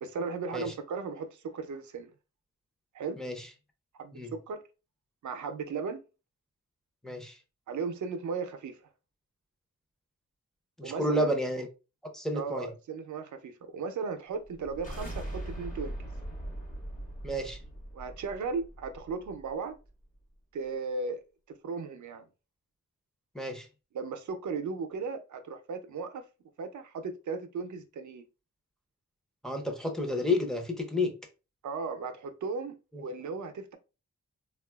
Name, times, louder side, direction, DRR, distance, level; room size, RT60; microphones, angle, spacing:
voice 1, 0.0-2.1 2.9-3.2 3.9-4.2 4.5-4.6 5.2-6.0 7.7-8.8 10.8-11.3 12.3-16.0 17.9-19.7 20.5-21.2 21.6-22.2 23.9-26.2 26.6-28.2 31.6-33.8, right 4 dB, 80° right, 0.5 m, -36 dB
voice 2, 3.2-3.5 4.1-4.3 7.0-7.4 10.8-11.7 12.1-12.7 17.2-17.6 23.3-23.7 29.4-31.2 32.9-33.1, left 1 dB, ahead, 0.6 m, -31 dB
sound 1, 14.4-19.5, right 1 dB, 25° left, 1.0 m, -41 dB
3.6 x 2.3 x 2.2 m
wide cardioid pair, 95°, 29 cm